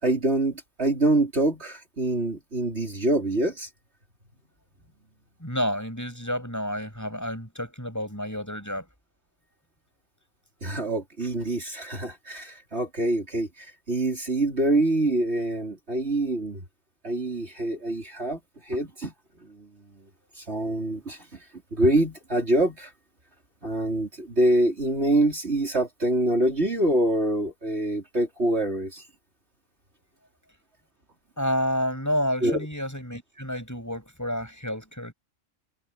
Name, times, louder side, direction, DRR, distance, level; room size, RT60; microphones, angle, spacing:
voice 1, 0.0-3.7 10.6-16.6 17.0-18.4 18.6-19.1 19.4-19.7 20.4-21.4 21.7-22.9 23.6-29.1 32.4-32.6, right 1 dB, 50° right, 4.3 m, -25 dB
voice 2, 5.4-8.9 31.4-35.1, equal, 10° left, 6.8 m, -30 dB
omnidirectional pair, 1.4 m